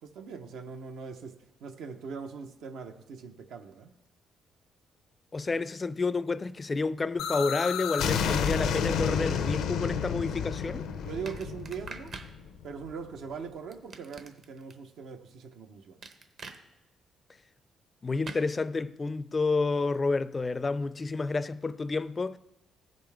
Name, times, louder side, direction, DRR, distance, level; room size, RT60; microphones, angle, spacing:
voice 1, 0.0-3.9 11.0-12.2 12.6-16.0, right 6 dB, 80° right, 0.8 m, -41 dB
voice 2, 5.3-10.9 18.0-22.4, left 3 dB, 30° left, 0.4 m, -30 dB
sound 1, 7.2-12.9, left 7 dB, 85° left, 0.6 m, -30 dB
sound 2, 11.3-12.3 13.7-14.7 16.0-16.6 18.2-18.5, right 4 dB, 55° right, 0.9 m, -44 dB
15.0 x 5.3 x 3.5 m
cardioid pair, 90°, 0 cm